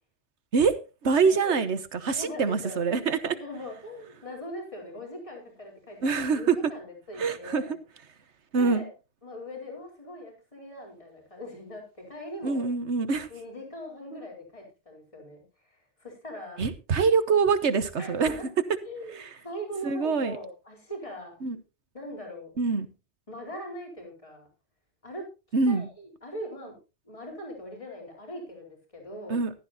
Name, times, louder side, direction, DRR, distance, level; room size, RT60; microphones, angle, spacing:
voice 1, 1.0-3.3 6.0-6.6 7.2-7.6 8.5-8.8 12.4-13.3 14.1-14.2 16.6-18.3 19.2-19.3 19.8-20.4 21.4-21.6 22.6-22.9 25.5-25.9 29.3-29.5, right 5 dB, 75° right, 1.4 m, -25 dB
voice 2, 2.1-7.8 8.5-8.9 9.2-12.7 13.3-16.6 18.0-18.5 18.9-21.3 21.9-22.5 23.3-24.5 25.0-25.2 25.7-26.8 27.0-29.4, equal, 30° left, 4.4 m, -41 dB
15.0 x 12.5 x 2.7 m
omnidirectional pair, 1.2 m